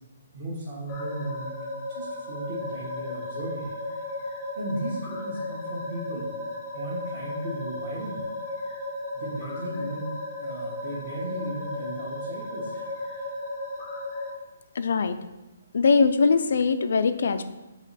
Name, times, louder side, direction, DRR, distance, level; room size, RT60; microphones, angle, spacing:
voice 1, 0.3-1.6 1.9-4.0 4.5-6.3 6.7-8.2 9.1-10.1 10.4-13.4, right 1 dB, 30° right, -10 dB, 1.4 m, -36 dB
sound 1, 0.9-14.3, left 2 dB, 15° left, 0.7 m, -35 dB
voice 2, 14.8-15.2 15.7-17.4, left 4 dB, 55° left, 10 dB, 0.4 m, -21 dB
7.4 x 3.1 x 4.1 m, 1.1 s
hypercardioid pair, 175°, 0 cm